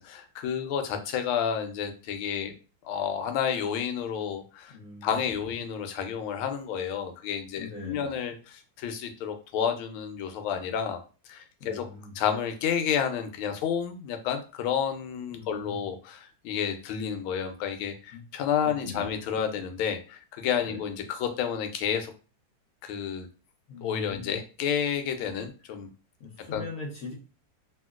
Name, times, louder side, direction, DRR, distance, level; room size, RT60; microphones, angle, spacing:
voice 1, 0.0-2.5 2.8-11.0 11.3-11.9 12.1-22.1 22.8-23.3 23.8-25.9 26.5-26.7, left 8 dB, 90° left, 7 dB, 1.4 m, -30 dB
voice 2, 4.7-5.1 7.6-8.2 11.6-12.1 15.3-15.8 18.1-18.2 18.8-19.1 20.7-20.8 23.7-24.4 26.2-27.1, left 4 dB, 70° left, -2 dB, 0.7 m, -41 dB
3.0 x 2.8 x 2.3 m, 0.35 s
omnidirectional pair, 2.2 m